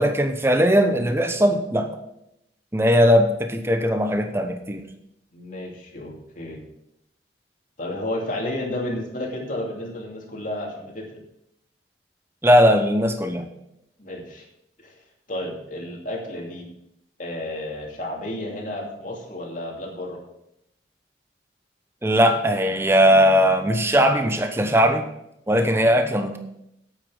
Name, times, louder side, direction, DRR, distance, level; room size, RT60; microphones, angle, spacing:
voice 1, 0.0-1.9 2.7-4.8 12.4-13.5 22.0-25.1 25.5-26.4, equal, 15° right, 6 dB, 0.9 m, -19 dB
voice 2, 5.3-6.6 7.8-11.2 14.0-14.4 14.8-15.0 15.3-16.7 17.2-20.2 25.5-25.6, left 1 dB, 45° left, 0 dB, 2.6 m, -32 dB
8.9 x 8.8 x 6.2 m, 0.80 s
head